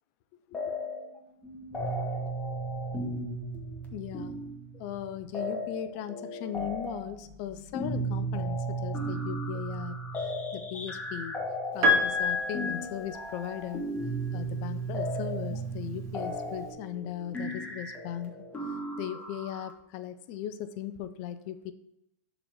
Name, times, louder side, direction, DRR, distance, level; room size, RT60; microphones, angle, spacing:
sound 1, 0.5-1.2 1.4-19.7, right 1 dB, 15° left, 1.4 m, -35 dB
voice 1, 3.9-4.4 4.8-10.0 10.5-11.4 11.7-13.9 14.3-18.4 19.0-21.7, left 10 dB, 50° left, 12 dB, 0.7 m, -38 dB
Piano, 11.8-13.8 15.1-15.2, left 2 dB, 35° right, 1.3 m, -27 dB
6.6 x 4.0 x 6.0 m, 0.82 s
hypercardioid pair, 115°, 9 cm